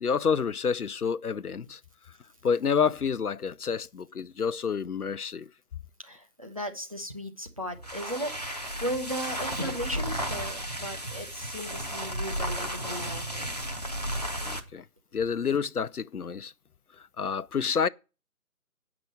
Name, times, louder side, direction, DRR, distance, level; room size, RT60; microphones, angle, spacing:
voice 1, 0.0-1.8 2.4-5.5 14.4-14.8 15.1-16.5 17.2-17.9, left 6 dB, 75° left, 0.6 m, -28 dB
voice 2, 6.0-13.6, equal, 25° right, 0.9 m, -36 dB
sound 1, 7.7-14.7, equal, 25° left, 0.7 m, -34 dB
9.4 x 6.0 x 7.7 m
figure-of-eight pair, 160°, 46 cm